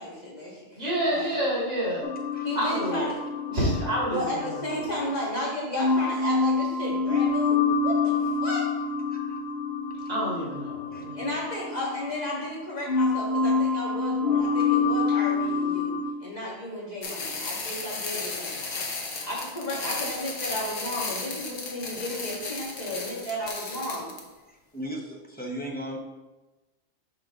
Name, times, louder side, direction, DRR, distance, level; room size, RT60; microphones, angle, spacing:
voice 1, 0.0-1.3 2.4-3.2 4.1-8.7 11.2-18.8 19.3-24.1, left 1 dB, 35° left, -5 dB, 1.7 m, -34 dB
voice 2, 0.8-2.1 2.5-3.1 3.5-4.6 10.1-11.2, equal, 65° right, -8 dB, 2.6 m, -28 dB
sound 1, 2.0-5.3 5.8-12.6 12.9-16.1, left 4 dB, 65° left, 0.7 m, -27 dB
sound 2, 17.0-24.2, left 3 dB, 80° left, 1.3 m, -34 dB
voice 3, 24.5-26.0, equal, 10° left, -1 dB, 0.5 m, -37 dB
6.1 x 5.0 x 3.6 m, 1.1 s
omnidirectional pair, 1.3 m